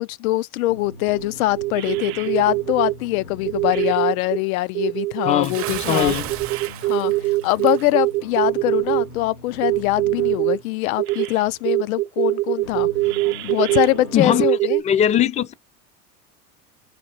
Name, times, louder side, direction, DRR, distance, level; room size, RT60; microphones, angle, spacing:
voice 1, 0.0-6.1 6.8-12.9 13.4-14.8, left 17 dB, 65° left, 0.5 m, -23 dB
sound 1, 0.7-5.1 6.2-11.1 12.6-14.3, left 2 dB, 85° left, 1.7 m, -41 dB
sound 2, 1.1-1.3 1.5-2.9 3.4-4.4 4.7-9.1 9.6-10.6 11.0-11.3 11.6-14.8, right 19 dB, 70° right, 0.7 m, -23 dB
voice 2, 5.2-5.6 5.9-6.3 14.1-14.4 14.8-15.5, left 9 dB, 15° left, 0.4 m, -19 dB
Bathtub (filling or washing) / Splash splatter, 5.4-7.9, right 12 dB, 30° right, 0.6 m, -33 dB
4.3 x 4.0 x 2.8 m
hypercardioid pair, 90°, 45 cm